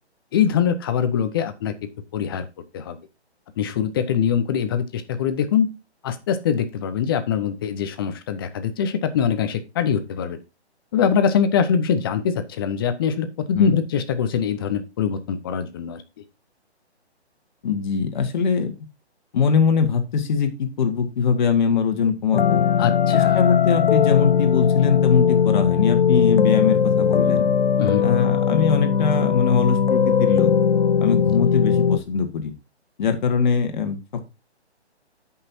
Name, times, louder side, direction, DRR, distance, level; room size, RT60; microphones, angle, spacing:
voice 1, 0.3-1.7 2.1-2.5 2.7-3.0 3.6-5.7 6.0-10.4 10.9-16.0 22.8-23.4 27.8-28.1 31.5-31.7, left 7 dB, 20° left, 10 dB, 0.7 m, -23 dB
voice 2, 17.6-18.7 19.3-22.6 23.1-27.5 28.0-30.5 31.0-32.5 33.0-34.2, left 6 dB, 40° left, 7 dB, 1.6 m, -22 dB
sound 1, 22.3-32.0, left 7 dB, 60° left, 0.8 m, -19 dB
13.0 x 5.6 x 2.7 m, 0.27 s
hypercardioid pair, 150°, 34 cm